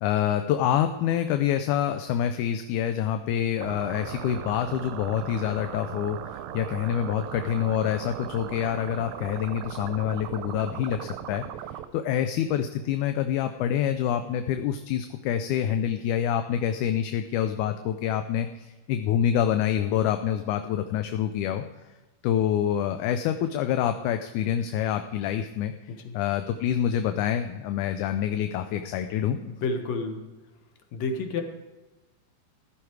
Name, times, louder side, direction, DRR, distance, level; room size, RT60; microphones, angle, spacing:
voice 1, 0.0-11.4 11.9-21.6 22.2-25.7 26.1-29.4, left 10 dB, 80° left, 8 dB, 2.0 m, -26 dB
sound 1, 3.6-11.9, right 11 dB, 80° right, 1.8 m, -38 dB
voice 2, 29.4-30.2 30.9-31.4, left 3 dB, 60° left, 5 dB, 2.5 m, -30 dB
15.5 x 11.5 x 4.7 m, 1.1 s
omnidirectional pair, 3.7 m